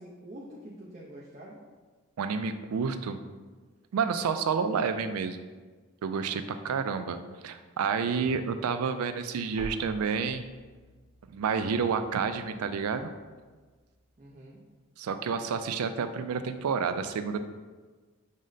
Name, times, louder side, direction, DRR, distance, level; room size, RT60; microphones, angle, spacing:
voice 1, 0.0-1.6 4.1-4.3 14.2-14.6, right 1 dB, 30° right, -7 dB, 0.5 m, -46 dB
voice 2, 2.2-3.2 3.9-5.5 6.0-10.5 11.3-13.1 15.0-17.4, right 6 dB, 85° right, 10 dB, 0.3 m, -29 dB
sound 1, 9.6-14.4, right 1 dB, 45° left, 0.7 m, -50 dB
6.1 x 2.1 x 3.9 m, 1.4 s
head